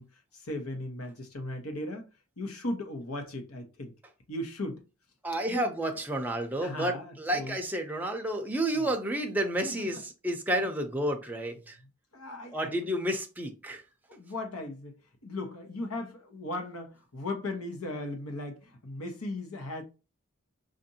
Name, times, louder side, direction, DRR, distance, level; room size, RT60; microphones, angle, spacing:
voice 1, 0.0-2.1 2.4-3.9 4.3-4.8 5.4-5.7 6.6-7.6 8.7-8.9 9.6-10.0 10.6-10.7 12.1-12.7 14.1-19.8, left 1 dB, 90° left, 1.1 m, -37 dB
voice 2, 5.2-11.8 12.5-13.8, right 1 dB, 10° right, 0.5 m, -31 dB
5.1 x 2.6 x 2.7 m
head